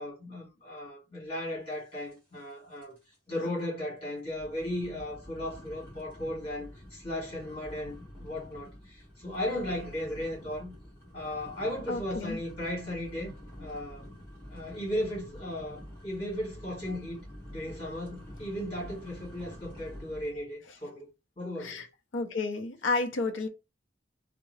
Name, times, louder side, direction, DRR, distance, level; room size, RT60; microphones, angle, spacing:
voice 1, 0.0-3.0 3.3-10.7 11.1-13.3 13.6-14.1 14.5-17.2 17.5-21.1 21.4-21.9, left 1 dB, 30° left, 2.1 m, -36 dB
sound 1, 2.1-2.5 2.8-3.2 3.6-3.7 4.3-20.4, equal, 10° left, 1.6 m, -48 dB
voice 2, 11.9-12.4 21.6-21.9 22.1-23.5, left 3 dB, 85° left, 0.5 m, -31 dB
3.5 x 2.0 x 3.1 m
head